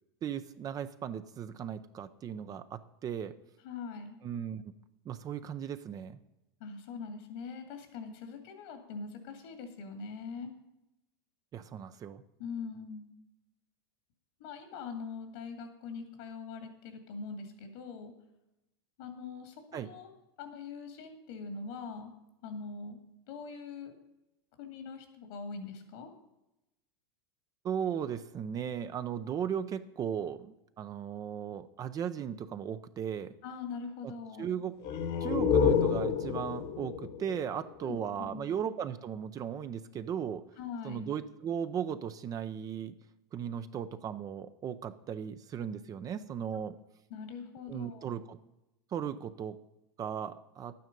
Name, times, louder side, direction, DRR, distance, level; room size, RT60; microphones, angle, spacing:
voice 1, 0.2-3.3 4.2-4.7 5.1-6.2 11.5-12.2 19.7-19.9 27.6-33.3 34.0-34.1 34.4-34.8 35.2-40.4 40.8-42.9 43.3-46.8 47.7-48.4 48.9-49.6 50.0-50.7, right 8 dB, 30° right, 10 dB, 0.6 m, -37 dB
voice 2, 3.6-4.2 6.6-10.5 12.4-13.1 14.4-18.1 19.0-20.1 20.4-22.1 22.4-23.0 23.3-23.9 24.6-26.1 33.4-34.5 37.8-38.5 40.6-41.1 47.1-48.2, left 5 dB, 65° left, 6 dB, 2.2 m, -42 dB
sound 1, 34.8-38.3, left 7 dB, 50° left, 1.4 m, -29 dB
11.0 x 9.3 x 5.3 m, 0.90 s
hypercardioid pair, 115°, 13 cm